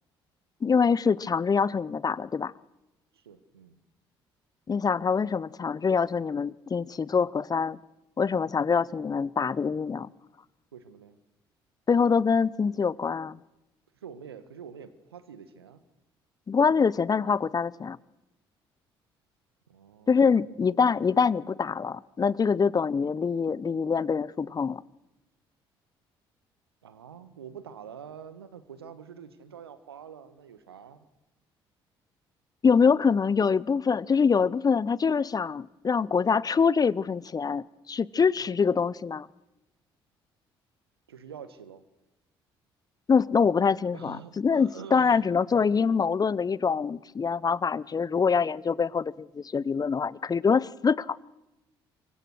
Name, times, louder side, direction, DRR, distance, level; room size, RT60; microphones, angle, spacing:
voice 1, 0.6-2.5 4.7-7.8 8.2-10.1 11.9-13.4 16.5-18.0 20.1-24.8 32.6-39.3 43.1-51.2, left 5 dB, 30° left, 22 dB, 0.8 m, -25 dB
voice 2, 3.1-3.8 10.7-11.2 14.0-15.8 19.7-20.5 26.8-31.1 38.4-38.6 41.1-41.8 43.9-45.2 45.5-45.6, right 7 dB, 85° right, 14 dB, 1.4 m, -46 dB
27.5 x 24.0 x 6.4 m, 0.95 s
figure-of-eight pair, 50°, 13 cm